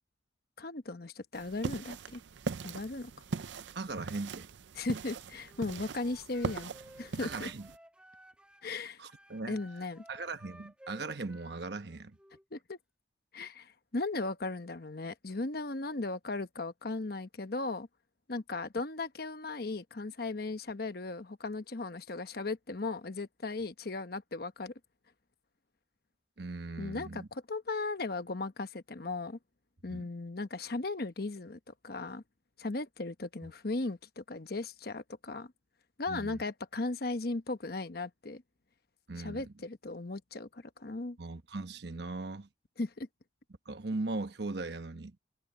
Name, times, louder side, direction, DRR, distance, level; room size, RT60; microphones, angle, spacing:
voice 1, 0.6-2.2 2.6-3.1 4.8-6.7 7.0-7.5 8.6-9.0 9.5-10.0 12.5-12.8 13.3-17.9 18.3-24.7 26.8-29.4 29.8-32.2 32.6-35.5 36.0-38.4 39.2-41.2 42.8-43.1, left 3 dB, 55° left, 1.0 m, -37 dB
sound 1, 1.3-7.8, right 4 dB, 80° right, 0.5 m, -40 dB
voice 2, 3.7-4.5 7.2-7.7 9.0-9.6 10.1-12.2 26.4-27.3 29.9-30.1 33.4-33.5 36.1-36.4 39.1-39.4 41.2-42.5 43.7-45.2, right 3 dB, 65° right, 1.1 m, -39 dB
Wind instrument woodwind instrument, 5.4-8.7 9.0-12.4, right 1 dB, 5° right, 2.3 m, -56 dB
head